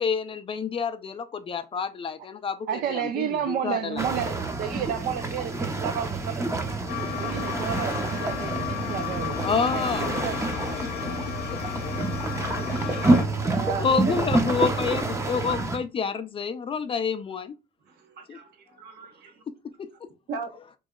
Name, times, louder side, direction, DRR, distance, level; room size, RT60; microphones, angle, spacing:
voice 1, 0.0-4.0 9.4-10.2 11.5-11.8 12.7-13.4 13.8-17.5 18.3-18.4 19.8-19.9, left 6 dB, 30° left, 0.4 m, -29 dB
voice 2, 2.7-6.7 7.2-10.4 11.0-11.3, right 9 dB, 60° right, 0.4 m, -32 dB
sound 1, 4.0-15.8, right 2 dB, 15° right, 0.6 m, -28 dB
sound 2, 6.9-13.2, left 8 dB, 65° left, 0.7 m, -34 dB
voice 3, 13.3-14.5 18.2-19.4 20.3-20.5, right 4 dB, 75° right, 1.1 m, -36 dB
3.1 x 2.7 x 3.5 m
cardioid pair, 110°, 17 cm